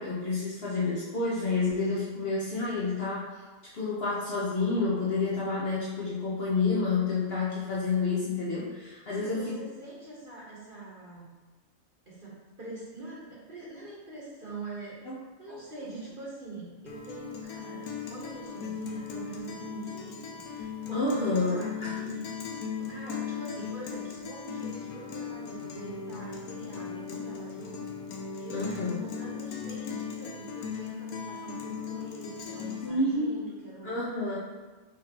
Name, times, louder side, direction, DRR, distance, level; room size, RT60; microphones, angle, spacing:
voice 1, 0.0-3.3 3.7-9.7 15.1-15.2 15.5-15.6 20.9-21.9 28.5-29.0 32.8-33.5 33.8-34.4, left 3 dB, 55° left, -6 dB, 0.8 m, -29 dB
voice 2, 9.1-11.3 12.1-22.3 22.8-27.8 28.4-34.0, right 3 dB, 40° right, -6 dB, 1.1 m, -44 dB
Guitar, 16.9-32.9, left 7 dB, 90° left, 1.1 m, -38 dB
4.9 x 3.2 x 2.9 m, 1.2 s
omnidirectional pair, 1.5 m